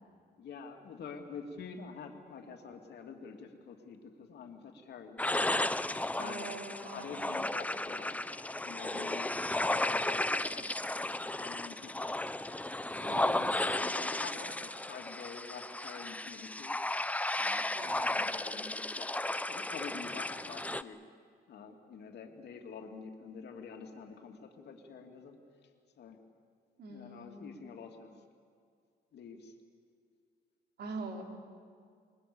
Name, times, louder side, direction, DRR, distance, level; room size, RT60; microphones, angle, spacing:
voice 1, 0.4-5.3 6.2-6.5 6.9-8.2 8.6-12.2 12.9-13.3 13.8-16.8 17.4-19.1 19.5-21.0 21.5-25.4 26.0-26.2 26.9-28.1 29.1-29.6, left 5 dB, 65° left, 3 dB, 3.0 m, -47 dB
sound 1, 5.2-20.8, left 1 dB, 10° left, 0.7 m, -34 dB
voice 2, 6.2-7.4 13.0-13.8 17.7-18.3 26.8-27.6 30.8-31.2, right 3 dB, 65° right, 2 dB, 4.2 m, -44 dB
26.5 x 23.0 x 7.2 m, 2.2 s
cardioid pair, 90°, 18 cm